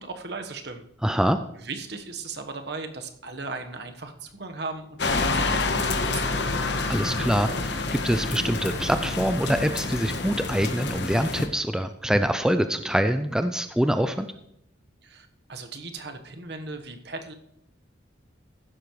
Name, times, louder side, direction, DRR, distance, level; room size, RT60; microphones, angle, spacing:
voice 1, 0.0-0.8 1.6-6.5 15.0-17.3, right 3 dB, 60° right, 6 dB, 1.2 m, -37 dB
voice 2, 1.0-1.4 6.9-14.3, equal, 5° right, 9 dB, 0.4 m, -25 dB
sound 1, 5.0-11.5, left 3 dB, 65° left, 1.2 m, -28 dB
15.0 x 11.5 x 3.2 m, 0.77 s
head